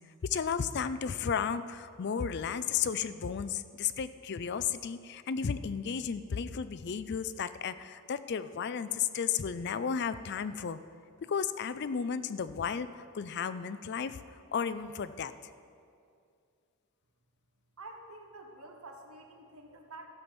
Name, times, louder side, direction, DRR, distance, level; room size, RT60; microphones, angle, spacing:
voice 1, 0.2-10.8 11.2-15.3, left 7 dB, 50° left, 14 dB, 0.4 m, -33 dB
voice 2, 17.8-20.1, right 2 dB, 75° right, 3 dB, 1.4 m, -48 dB
14.5 x 5.8 x 7.0 m, 2.4 s
head